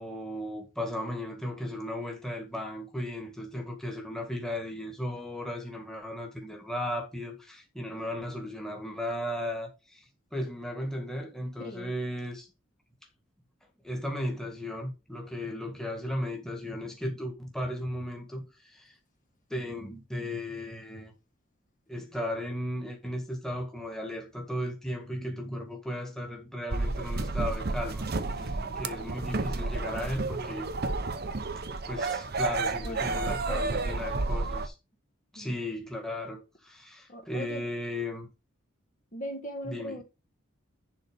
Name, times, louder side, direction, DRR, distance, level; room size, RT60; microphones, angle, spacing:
voice 1, 0.0-12.5 13.8-19.0 19.5-21.1 21.9-30.7 31.9-34.8 35.3-38.3 39.7-40.0, left 1 dB, ahead, 1.8 m, -36 dB
voice 2, 11.6-11.9 28.4-29.0 32.8-33.9 35.3-35.5 37.1-37.7 39.1-40.0, equal, 35° left, 1.5 m, -40 dB
sound 1, 26.7-34.7, right 3 dB, 45° right, 0.8 m, -31 dB
10.5 x 4.0 x 5.2 m
head